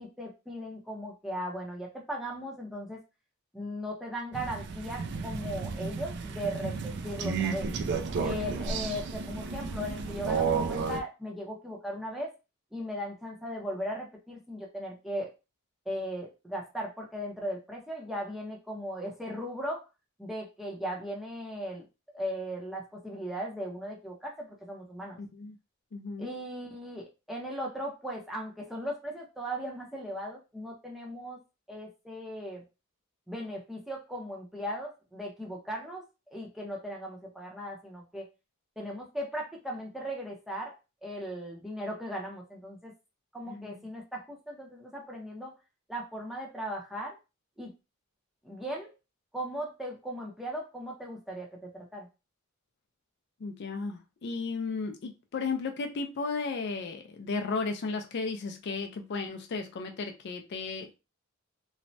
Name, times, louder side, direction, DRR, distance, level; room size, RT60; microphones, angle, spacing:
voice 1, 0.0-3.0 3.5-7.7 8.2-12.3 12.7-15.3 15.9-19.8 20.2-21.9 22.1-25.2 26.2-31.4 31.7-32.6 33.3-36.0 36.3-38.3 38.8-40.7 41.0-42.9 43.3-45.5 45.9-47.1 47.6-47.7 48.4-48.9 49.3-52.1, equal, ahead, 0.6 m, -37 dB
Crow, 4.3-11.0, right 5 dB, 55° right, 0.4 m, -32 dB
voice 2, 25.2-25.5 25.9-26.3 43.5-43.8 53.4-60.9, left 4 dB, 55° left, 0.4 m, -34 dB
3.1 x 2.1 x 2.6 m
head